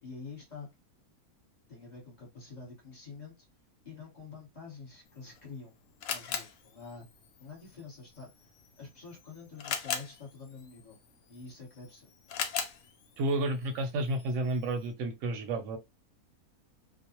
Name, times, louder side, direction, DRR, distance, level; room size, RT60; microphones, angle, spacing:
voice 1, 0.0-0.7 1.7-3.5 3.8-5.7 6.1-7.1 7.4-8.3 8.8-11.0 11.3-12.1, left 4 dB, 30° left, 1.0 m, -47 dB
Camera, 5.1-14.9, left 7 dB, 75° left, 1.0 m, -41 dB
voice 2, 13.2-15.8, right 2 dB, 65° right, 0.9 m, -31 dB
2.4 x 2.0 x 2.8 m
omnidirectional pair, 1.6 m